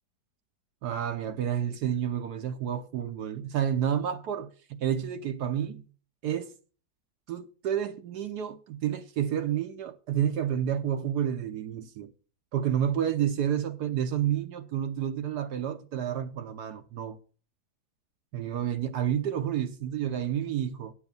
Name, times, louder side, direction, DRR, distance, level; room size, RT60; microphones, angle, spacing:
voice 1, 0.8-5.9 6.2-6.5 7.3-12.1 12.5-17.2 18.3-20.9, right 9 dB, 70° right, 1.2 m, -30 dB
9.8 x 7.1 x 5.2 m
omnidirectional pair, 1.9 m